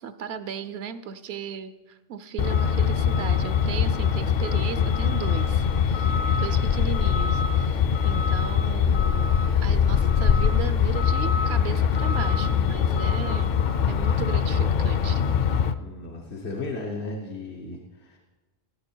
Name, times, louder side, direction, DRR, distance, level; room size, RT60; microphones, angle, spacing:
voice 1, 0.0-9.4 9.6-13.5 13.9-15.2, right 7 dB, 75° right, 12 dB, 0.9 m, -36 dB
Truck, 2.4-15.7, left 7 dB, 55° left, 0.6 m, -22 dB
voice 2, 15.8-18.2, left 3 dB, 85° left, 0 dB, 1.3 m, -35 dB
16.0 x 7.7 x 4.5 m, 1.2 s
omnidirectional pair, 1.1 m